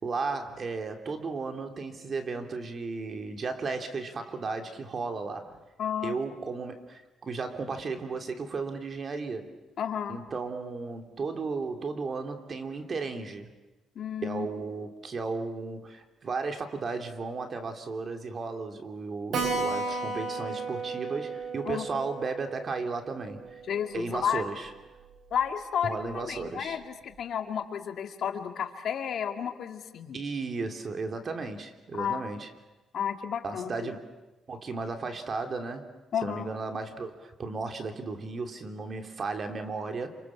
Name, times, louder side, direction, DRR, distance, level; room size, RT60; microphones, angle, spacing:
voice 1, 0.0-5.6 6.0-9.5 10.1-13.5 14.2-23.6 23.9-24.7 25.8-26.8 30.1-32.5 33.4-34.0 34.5-35.9 36.2-40.1, right 4 dB, 45° right, 5 dB, 3.0 m, -35 dB
voice 2, 5.8-6.2 9.8-10.2 14.0-14.5 21.6-21.9 23.7-24.4 25.3-30.2 31.9-32.2 32.9-33.9 36.1-36.5, left 8 dB, 65° left, 5 dB, 2.3 m, -32 dB
Keyboard (musical), 19.3-24.4 24.7-24.8 25.0-25.1 25.4-25.5 26.1-26.4, right 3 dB, 65° right, 7.8 m, -34 dB
28.0 x 26.0 x 7.3 m, 1.1 s
cardioid pair, 90°, 0 cm